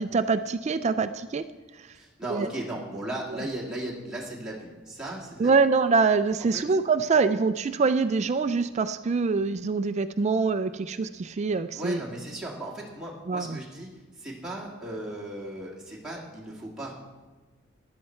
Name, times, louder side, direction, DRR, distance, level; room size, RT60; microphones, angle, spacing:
voice 1, 0.0-1.4 1.8-1.9 2.3-2.5 5.4-12.0 13.3-13.6, right 4 dB, 30° right, 11 dB, 0.3 m, -24 dB
voice 2, 1.9-5.5 6.5-6.6 11.7-16.9, right 1 dB, 5° right, -5 dB, 1.8 m, -36 dB
13.5 x 10.5 x 4.4 m, 1.3 s
head